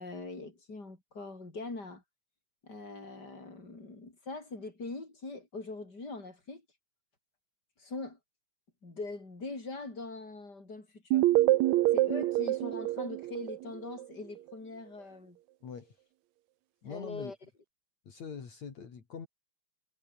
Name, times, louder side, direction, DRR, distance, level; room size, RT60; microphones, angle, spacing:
voice 1, 0.0-2.0 2.6-6.6 7.8-8.2 8.8-11.3 11.9-15.4 16.8-17.4, left 3 dB, 30° left, 6.7 m, -42 dB
sound 1, 11.1-14.0, right 16 dB, 75° right, 2.0 m, -26 dB
voice 2, 16.8-17.3 18.1-19.3, left 6 dB, 65° left, 4.4 m, -43 dB
omnidirectional pair, 3.5 m